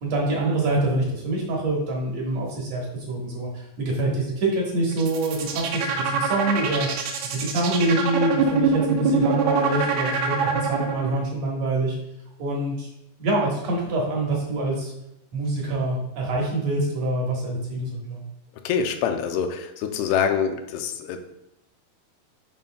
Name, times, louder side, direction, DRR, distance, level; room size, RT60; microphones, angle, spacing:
voice 1, 0.0-12.0 12.4-12.9 13.2-14.9 15.3-18.2, right 2 dB, 60° right, -3 dB, 1.9 m, -25 dB
sound 1, 4.9-11.2, right 6 dB, 85° right, 1.7 m, -24 dB
voice 2, 18.6-21.2, left 7 dB, 90° left, 5 dB, 2.6 m, -25 dB
9.4 x 5.3 x 2.3 m, 0.84 s
omnidirectional pair, 4.5 m